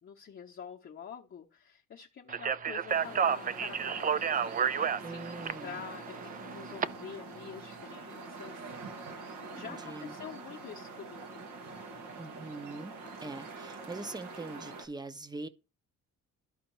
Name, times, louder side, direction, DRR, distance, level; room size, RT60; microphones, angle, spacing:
voice 1, 0.0-4.2 4.7-9.2 9.5-11.4, left 7 dB, 40° left, 0.8 m, -47 dB
Speech, 2.3-6.9, right 7 dB, 30° right, 0.4 m, -31 dB
sound 1, 2.9-14.9, right 3 dB, 85° right, 1.6 m, -45 dB
voice 2, 5.0-5.8 9.6-10.1 12.2-12.9 13.2-15.5, right 2 dB, 15° right, 0.7 m, -42 dB
12.5 x 4.3 x 3.0 m
cardioid pair, 90°, 30 cm